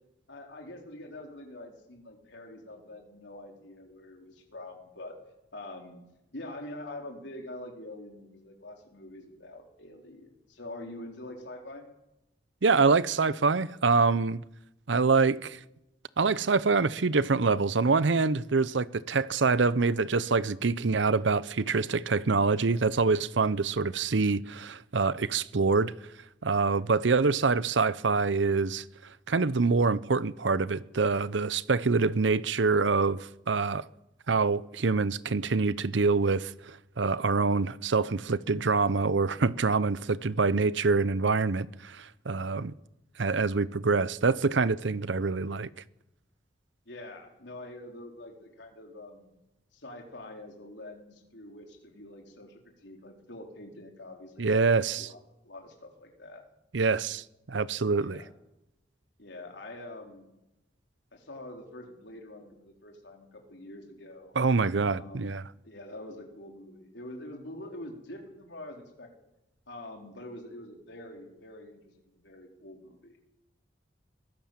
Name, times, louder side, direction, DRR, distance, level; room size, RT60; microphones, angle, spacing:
voice 1, 0.3-5.2 5.5-6.0 6.3-11.9 46.9-49.3 49.7-56.4 58.0-58.3 59.2-60.3 61.1-64.3 64.7-65.4 65.6-69.1 69.7-73.4, left 1 dB, 70° left, 4.2 m, -45 dB
voice 2, 12.6-14.4 14.9-15.6 16.2-25.9 26.4-28.8 29.3-33.9 34.3-42.7 43.2-45.7 54.4-55.1 56.7-58.2 64.4-65.4, right 4 dB, 80° right, 0.7 m, -25 dB
23.0 x 16.5 x 7.5 m
head